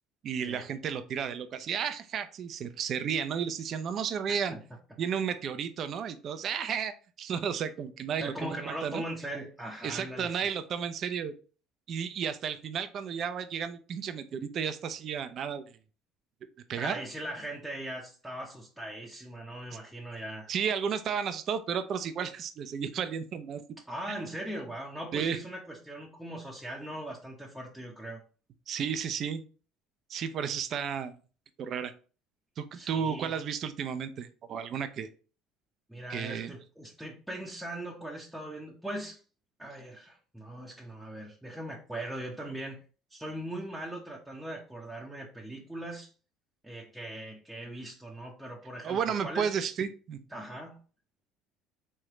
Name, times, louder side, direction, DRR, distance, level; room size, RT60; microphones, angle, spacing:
voice 1, 0.2-4.5 5.0-6.9 7.2-9.0 9.8-11.3 11.9-15.6 16.7-17.0 20.5-23.6 24.1-24.2 25.1-25.4 28.7-29.4 30.1-31.1 31.6-31.9 32.6-35.1 36.1-36.5 48.8-50.2, right 7 dB, 50° right, 10 dB, 0.5 m, -33 dB
voice 2, 4.3-4.6 8.2-10.5 16.8-20.5 23.9-28.2 32.7-33.3 35.9-39.2 39.6-42.8 43.1-46.1 46.6-49.5 50.3-50.8, right 1 dB, ahead, -3 dB, 0.8 m, -40 dB
3.6 x 3.3 x 3.0 m, 0.37 s
supercardioid pair, 80°, 0 cm